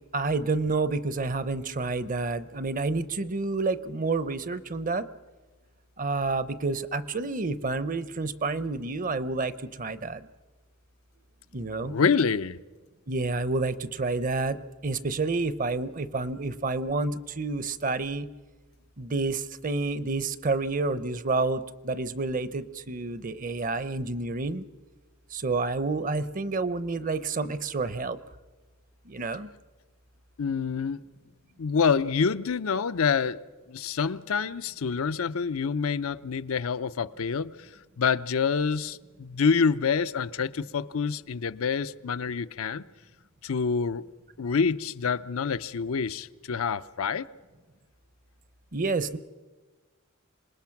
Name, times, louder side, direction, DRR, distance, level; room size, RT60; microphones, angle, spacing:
voice 1, 0.1-5.1 6.0-10.3 11.5-12.0 13.1-18.3 19.0-24.6 25.3-28.2 29.1-29.5 48.7-49.2, right 3 dB, 40° right, 0.7 m, -29 dB
voice 2, 11.8-12.6 30.4-31.0 31.6-33.4 33.7-37.5 38.0-42.8 43.4-44.1 44.4-47.3, left 5 dB, 75° left, 0.6 m, -27 dB
26.5 x 20.0 x 5.9 m
head